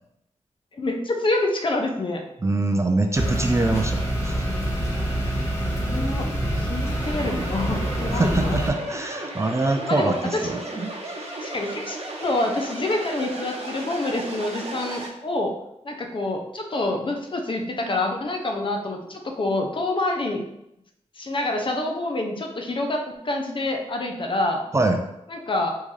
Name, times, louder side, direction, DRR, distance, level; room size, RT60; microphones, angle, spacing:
voice 1, 0.8-2.2 5.7-8.6 9.9-10.5 11.4-15.5 15.8-20.4 21.2-24.6 25.3-25.7, left 2 dB, 45° left, 3 dB, 0.6 m, -27 dB
voice 2, 2.4-4.4 8.1-11.3 24.7-25.0, right 2 dB, 25° right, 4 dB, 0.4 m, -24 dB
sound 1, 3.1-8.7, right 1 dB, 25° left, 1.2 m, -26 dB
sound 2, 7.0-15.1, right 2 dB, 55° right, 0.8 m, -35 dB
3.7 x 2.6 x 3.2 m, 0.84 s
cardioid pair, 70°, 12 cm